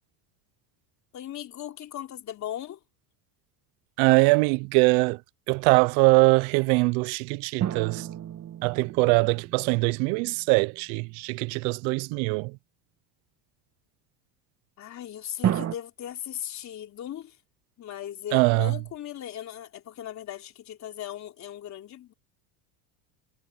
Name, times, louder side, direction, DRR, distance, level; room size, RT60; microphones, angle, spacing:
voice 1, 1.1-2.8 14.8-17.4 17.8-22.1, left 11 dB, 35° left, 3.5 m, -38 dB
voice 2, 4.0-5.2 5.5-8.1 8.6-12.5 18.3-18.7, right 28 dB, 65° right, 0.6 m, -22 dB
sound 1, 7.6-10.5 15.4-15.8, right 10 dB, 35° right, 2.0 m, -31 dB
supercardioid pair, 135°, 46 cm